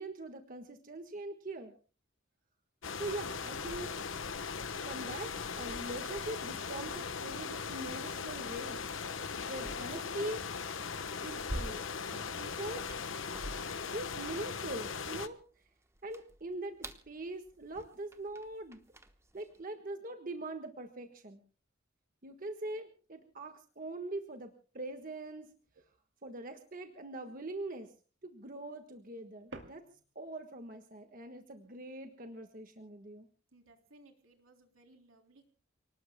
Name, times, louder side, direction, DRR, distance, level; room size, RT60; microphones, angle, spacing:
voice 1, 0.0-1.7 3.0-3.9 4.8-8.8 9.5-10.4 11.2-12.9 13.9-15.4 16.0-18.8 19.3-21.4 22.2-25.5 26.2-27.9 28.2-29.8 30.1-33.3, right 2 dB, 40° right, 6 dB, 1.5 m, -42 dB
sound 1, 2.8-15.3, left 5 dB, 70° left, 1.1 m, -39 dB
sound 2, 5.1-19.6, right 1 dB, 15° right, 1.1 m, -50 dB
sound 3, 20.8-21.2 21.6-21.8 22.2-24.6 24.9-26.2 26.6-27.6 27.9-28.7 29.0-30.6 31.1-32.2, right 2 dB, 60° right, 2.4 m, -58 dB
voice 2, 33.5-35.5, right 2 dB, 80° right, 4 dB, 3.5 m, -62 dB
29.5 x 19.5 x 2.2 m, 0.38 s
head